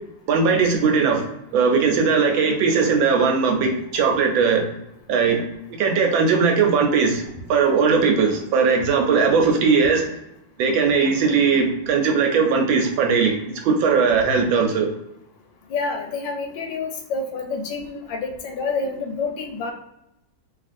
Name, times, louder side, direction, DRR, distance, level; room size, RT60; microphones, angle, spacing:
voice 1, 0.3-1.2 1.5-4.6 5.1-5.4 5.8-7.2 7.5-10.0 10.6-14.9, right 5 dB, 80° right, 3 dB, 1.4 m, -19 dB
voice 2, 15.7-19.7, left 4 dB, 75° left, 3 dB, 1.2 m, -28 dB
3.1 x 2.5 x 2.5 m, 0.83 s
omnidirectional pair, 2.1 m